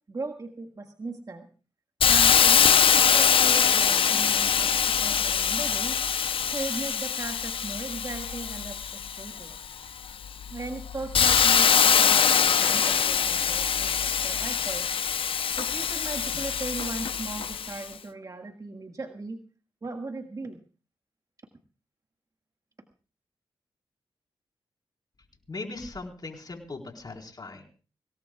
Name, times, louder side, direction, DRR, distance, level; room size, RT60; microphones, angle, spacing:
voice 1, 0.1-1.5 2.0-6.0 6.5-9.6 10.5-14.9 15.6-19.4 19.8-20.6, right 3 dB, 40° right, 3 dB, 1.8 m, -38 dB
Hiss, 2.0-9.6 10.1-17.8, left 7 dB, 70° left, 0.7 m, -23 dB
voice 2, 25.5-27.8, left 3 dB, 45° left, 2 dB, 4.5 m, -39 dB
25.5 x 18.0 x 2.4 m, 0.36 s
cardioid pair, 45°, 9 cm